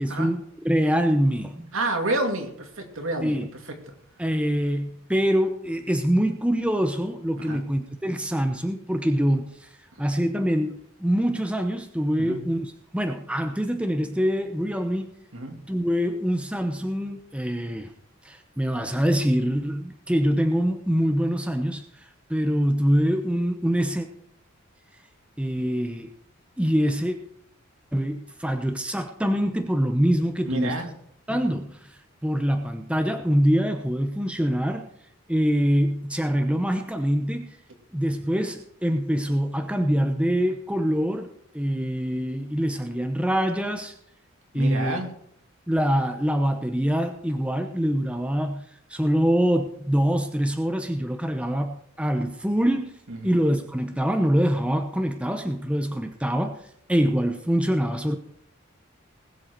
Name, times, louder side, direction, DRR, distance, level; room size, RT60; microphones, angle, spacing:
voice 1, 0.0-1.7 3.2-3.5 4.2-9.7 10.0-15.1 15.7-17.9 18.2-21.8 22.3-24.1 25.4-26.1 26.6-27.2 27.9-30.8 31.3-34.9 35.3-37.6 37.9-41.3 41.5-43.9 44.5-45.0 45.7-48.6 48.9-52.9 53.2-56.6 56.9-58.2, equal, 5° right, 6 dB, 0.8 m, -24 dB
voice 2, 1.7-3.8 7.4-7.6 12.2-12.4 15.3-15.6 30.5-30.9 44.5-45.1 53.1-53.3, right 2 dB, 65° right, 3 dB, 2.5 m, -29 dB
20.0 x 7.8 x 4.6 m, 0.70 s
head